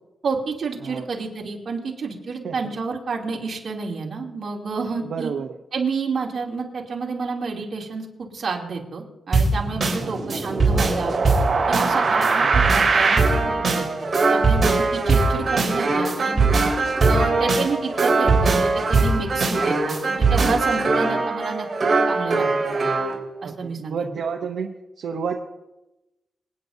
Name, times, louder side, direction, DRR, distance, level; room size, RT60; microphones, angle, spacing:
voice 1, 0.2-5.3 5.7-11.1 11.7-13.9 14.3-16.5 17.1-21.7 22.1-22.8 23.4-24.1, right 4 dB, 55° right, -2 dB, 2.8 m, -29 dB
voice 2, 5.0-5.5 10.0-10.4 12.4-12.8 20.9-21.3 23.4-24.7 25.0-25.4, right 6 dB, 80° right, 2 dB, 0.7 m, -31 dB
sound 1, 9.3-23.1, right 3 dB, 35° right, 4.0 m, -20 dB
27.0 x 9.3 x 2.7 m, 0.99 s
wide cardioid pair, 130°, 0 cm